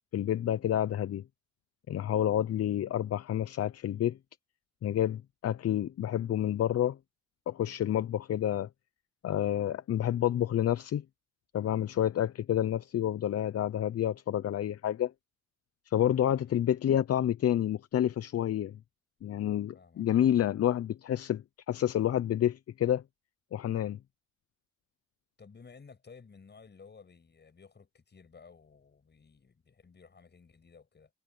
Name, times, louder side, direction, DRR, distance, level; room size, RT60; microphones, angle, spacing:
voice 1, 0.1-1.2 1.9-4.2 4.8-7.0 7.5-8.7 9.2-11.0 11.5-15.1 15.9-18.8 19.2-23.0 23.5-24.0, left 11 dB, 55° left, 0.8 m, -29 dB
voice 2, 16.3-16.6 19.7-20.4 25.4-31.1, left 5 dB, 35° left, 7.3 m, -55 dB
cardioid pair, 90°, 30 cm